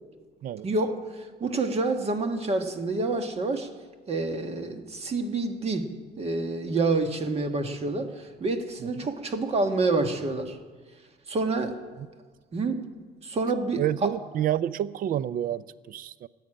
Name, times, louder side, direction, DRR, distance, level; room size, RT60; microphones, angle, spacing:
voice 1, 0.6-3.7 4.1-10.6 11.3-11.8 12.5-12.9 13.2-14.1, right 3 dB, 35° right, 1.5 m, -28 dB
voice 2, 13.8-16.3, right 11 dB, 55° right, 0.5 m, -29 dB
14.0 x 9.4 x 8.6 m
cardioid pair, 110°, 17 cm